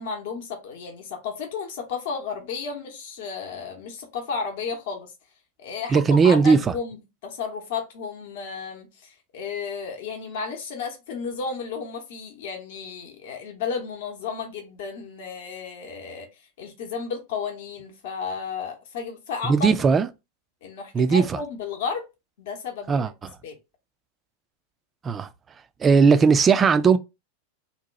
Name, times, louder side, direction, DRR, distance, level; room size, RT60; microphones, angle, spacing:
voice 1, 0.0-5.1 5.6-7.0 7.2-16.3 16.6-19.7 20.6-22.1 22.4-23.1 23.4-23.5, left 5 dB, 55° left, 0.8 m, -33 dB
voice 2, 5.9-6.7 19.4-20.1 20.9-21.4 22.9-23.1 25.0-25.3 25.8-27.0, right 5 dB, 20° right, 0.3 m, -18 dB
2.8 x 2.2 x 3.9 m
figure-of-eight pair, 90°, 0 cm